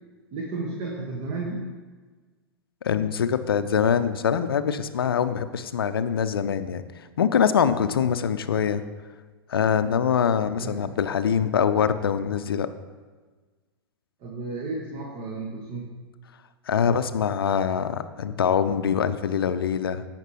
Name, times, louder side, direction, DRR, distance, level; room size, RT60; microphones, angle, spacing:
voice 1, 0.3-1.7 10.5-10.8 14.2-15.9, right 3 dB, 35° right, 0 dB, 1.3 m, -33 dB
voice 2, 2.8-6.8 7.2-8.8 9.5-12.7 16.7-20.0, left 7 dB, 65° left, 11 dB, 0.5 m, -24 dB
15.5 x 5.9 x 3.1 m, 1.4 s
figure-of-eight pair, 105°, 13 cm